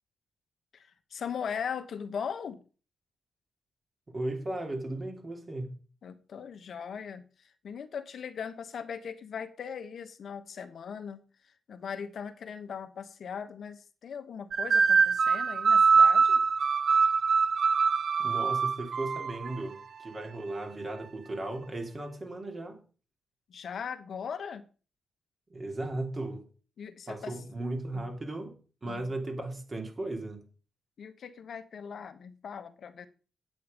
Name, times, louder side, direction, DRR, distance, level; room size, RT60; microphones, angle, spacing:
voice 1, 0.7-2.6 6.0-7.2 7.6-11.2 11.7-16.4 23.5-24.6 26.8-27.3 27.9-28.1 28.8-29.1 31.0-33.1, left 7 dB, 65° left, 1.1 m, -39 dB
voice 2, 4.1-5.7 18.2-22.8 25.5-26.5 27.1-30.4, right 2 dB, 35° right, 3.1 m, -36 dB
sound 1, 14.5-19.6, right 5 dB, 55° right, 0.5 m, -23 dB
9.3 x 8.4 x 5.2 m
cardioid pair, 80°, 0 cm